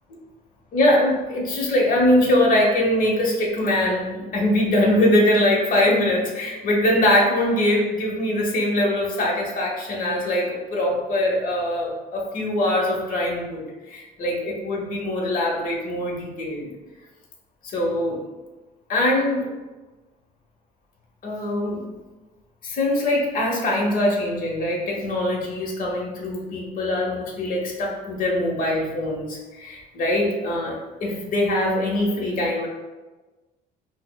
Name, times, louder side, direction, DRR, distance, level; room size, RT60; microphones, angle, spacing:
voice 1, 0.7-16.7 17.6-18.2 18.9-19.5 21.2-21.8 22.6-32.7, left 1 dB, 55° left, -2 dB, 1.0 m, -22 dB
5.6 x 2.0 x 2.2 m, 1.2 s
cardioid pair, 110°, 17 cm